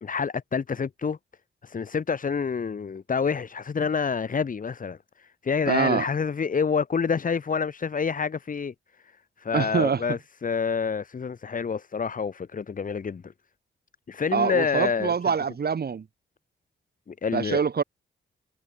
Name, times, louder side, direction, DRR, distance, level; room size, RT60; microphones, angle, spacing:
voice 1, 0.0-1.2 1.6-8.7 9.0-9.1 9.4-13.3 14.1-15.1 17.1-17.6, left 6 dB, 40° left, 0.9 m, -28 dB
voice 2, 5.7-6.0 9.5-10.0 14.3-16.0 17.3-17.8, right 6 dB, 50° right, 1.3 m, -24 dB
cardioid pair, 65°, 20 cm